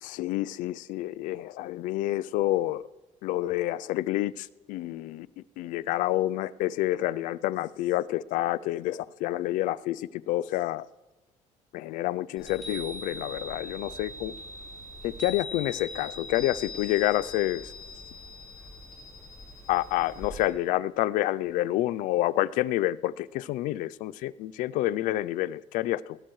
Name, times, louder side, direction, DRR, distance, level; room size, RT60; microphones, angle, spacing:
voice 1, 0.0-2.9 3.2-5.3 5.6-10.9 11.7-14.3 15.0-17.7 19.7-26.2, left 15 dB, 85° left, 18 dB, 0.4 m, -28 dB
Chime, 12.4-20.5, left 2 dB, ahead, 6.2 m, -41 dB
20.5 x 17.0 x 3.2 m, 1.1 s
cardioid pair, 175°, 13 cm